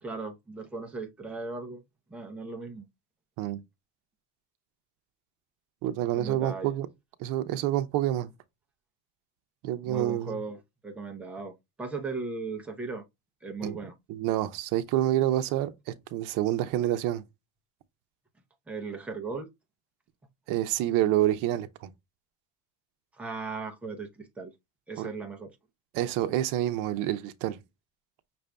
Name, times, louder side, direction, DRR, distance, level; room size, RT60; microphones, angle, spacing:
voice 1, 0.0-1.8 2.1-2.9 6.2-6.7 9.8-13.0 13.4-13.9 18.7-19.5 23.1-24.5 24.9-25.5, right 4 dB, 5° right, 0.6 m, -37 dB
voice 2, 5.8-6.9 7.2-8.3 9.6-10.4 13.6-13.8 14.1-17.2 20.5-21.9 25.0-25.1 25.9-27.6, right 13 dB, 75° right, 0.7 m, -28 dB
6.0 x 2.6 x 3.3 m
cardioid pair, 165°, 32 cm